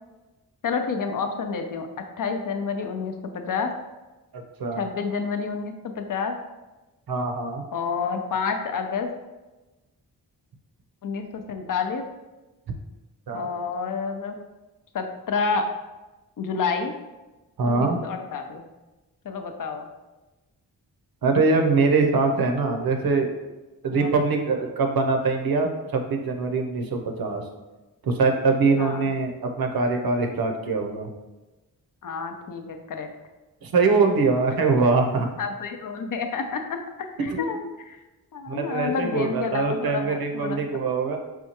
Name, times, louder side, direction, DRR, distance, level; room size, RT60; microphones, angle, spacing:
voice 1, 0.6-1.9 2.2-3.7 4.8-6.3 7.7-9.1 11.0-12.0 13.3-14.4 14.9-15.7 16.4-16.9 17.6-18.6 19.2-19.9 24.0-24.1 28.8-29.1 32.0-33.1 35.4-36.8 37.2-37.6 38.3-40.6, left 5 dB, 50° left, 6 dB, 0.6 m, -29 dB
voice 2, 4.3-4.8 7.1-7.6 13.3-13.5 17.6-18.0 21.2-23.3 23.8-27.4 28.0-31.1 33.6-35.3 37.3-37.5 38.5-41.2, right 4 dB, 60° right, 4 dB, 0.7 m, -23 dB
4.2 x 2.3 x 2.8 m, 1.1 s
cardioid pair, 45°, 41 cm